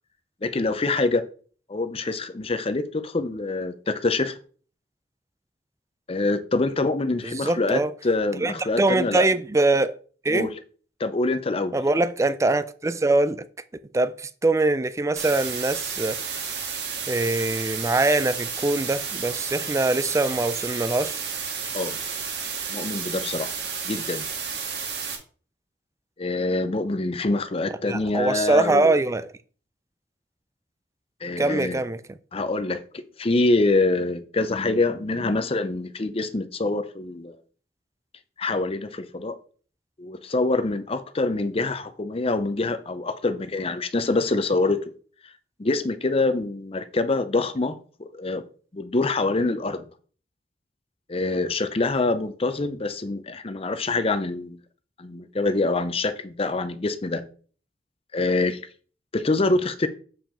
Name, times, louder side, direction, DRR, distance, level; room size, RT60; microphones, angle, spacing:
voice 1, 0.4-1.2 1.7-4.3 6.1-9.3 10.3-10.5 11.0-11.7 21.7-22.0 22.7-23.5 23.8-24.3 26.2-28.9 31.2-31.8 32.3-32.8 33.2-37.4 38.4-39.4 40.0-44.8 45.6-48.4 48.7-49.9 51.1-54.6 55.0-57.2 58.1-58.6 59.1-59.9, left 2 dB, 35° left, 0.6 m, -25 dB
voice 2, 7.1-7.9 8.4-9.9 10.2-10.5 11.7-13.4 13.9-16.2 17.1-21.2 27.9-29.3 31.4-32.0, right 2 dB, 15° right, 0.4 m, -23 dB
sound 1, 15.2-25.2, right 6 dB, 70° right, 1.6 m, -32 dB
7.3 x 4.9 x 3.7 m
head